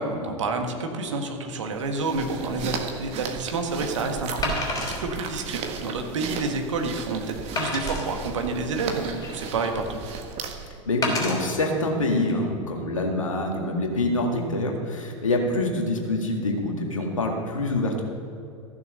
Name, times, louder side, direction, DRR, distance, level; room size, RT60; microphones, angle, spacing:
voice 1, 0.0-4.5 4.9-10.0, right 3 dB, 65° right, 4 dB, 1.6 m, -29 dB
sound 1, 1.7-10.8, right 6 dB, 35° right, 1.5 m, -35 dB
Wood, 2.8-3.0 4.4-5.0 5.6-5.7 6.3-6.4 7.6-8.0 8.8-9.6 11.0-11.4 12.1-12.3, left 2 dB, 20° left, 3.5 m, -29 dB
voice 2, 10.9-18.0, left 2 dB, 75° left, 1 dB, 2.0 m, -25 dB
14.5 x 6.7 x 6.5 m, 2.5 s
figure-of-eight pair, 85°, 17 cm